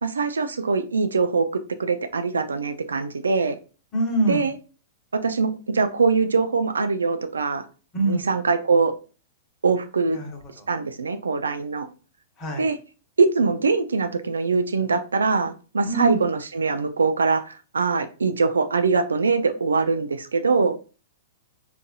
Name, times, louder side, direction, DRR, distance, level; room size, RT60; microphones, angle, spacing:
voice 1, 0.0-3.6 4.3-4.5 5.1-7.6 8.1-8.9 9.6-10.2 10.7-11.9 12.6-12.8 13.2-20.7, right 4 dB, 85° right, 10 dB, 0.3 m, -23 dB
voice 2, 3.9-4.5 7.9-8.3 10.1-10.7 12.4-12.7 15.8-16.2, right 2 dB, 25° left, 1 dB, 1.2 m, -25 dB
4.0 x 2.6 x 2.2 m, 0.35 s
hypercardioid pair, 110°, 0 cm